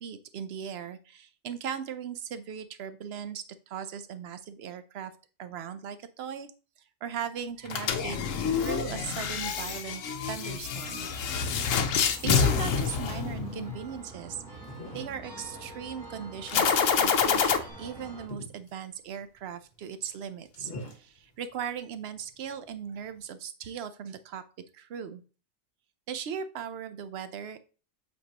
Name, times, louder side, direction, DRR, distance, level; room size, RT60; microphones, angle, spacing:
voice 1, 0.0-5.1 5.4-6.5 7.0-8.2 8.5-11.1 12.2-14.4 14.9-24.4 24.7-25.2 26.1-27.6, right 8 dB, 60° right, 11 dB, 0.8 m, -38 dB
sound 1, 7.4-23.2, left 1 dB, 50° left, 1.5 m, -49 dB
sound 2, 7.7-13.8 16.5-17.6, left 6 dB, 75° left, 1.1 m, -27 dB
sound 3, 10.1-18.3, right 2 dB, 85° right, 2.3 m, -46 dB
8.1 x 4.4 x 2.9 m, 0.36 s
omnidirectional pair, 1.3 m